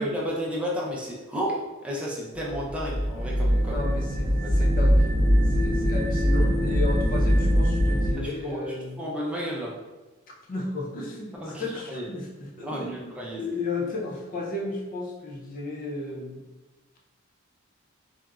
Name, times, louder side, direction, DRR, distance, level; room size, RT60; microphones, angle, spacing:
voice 1, 0.0-1.6 1.8-3.8 4.3-4.7 8.2-9.7 11.3-12.1 12.6-13.4, equal, 5° right, -5 dB, 0.5 m, -32 dB
sound 1, 2.4-8.1, equal, 65° right, 0.6 m, -22 dB
voice 2, 3.6-5.1 5.5-9.0 10.5-12.3 12.6-13.1 13.4-16.4, left 2 dB, 45° left, -1 dB, 0.5 m, -33 dB
3.8 x 2.0 x 2.3 m, 1.1 s
head